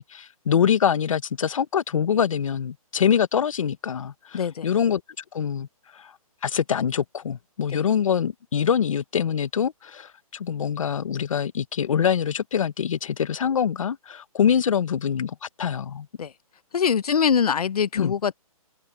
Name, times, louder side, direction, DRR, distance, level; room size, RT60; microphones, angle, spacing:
voice 1, 0.0-5.7 5.9-6.1 6.4-16.1 17.9-18.1, left 8 dB, 60° left, 1.2 m, -24 dB
voice 2, 4.3-4.7 7.7-7.8 16.2-16.3 16.7-18.3, left 7 dB, 90° left, 0.7 m, -23 dB
hypercardioid pair, 165°, 19 cm